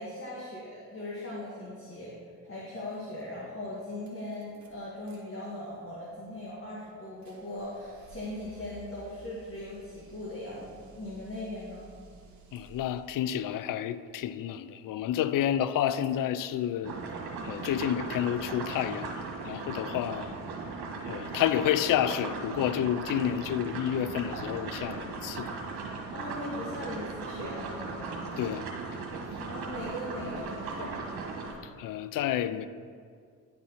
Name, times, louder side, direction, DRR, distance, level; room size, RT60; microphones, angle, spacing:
voice 1, 0.0-2.1 2.4-11.8 26.1-27.9 29.5-31.0, left 1 dB, 30° left, 1.9 m, -39 dB
sound 1, 3.2-3.3 3.6-5.2 5.5-13.3 14.8-15.5 15.7-16.7, right 3 dB, 45° right, 1.5 m, -55 dB
voice 2, 12.5-17.0 17.4-20.3 21.1-25.5 28.4-28.7 31.8-32.7, left 10 dB, 55° left, 0.5 m, -30 dB
sound 2, 16.8-31.5, right 4 dB, 65° right, 1.5 m, -38 dB
10.5 x 4.3 x 4.1 m
supercardioid pair, 60°, 40 cm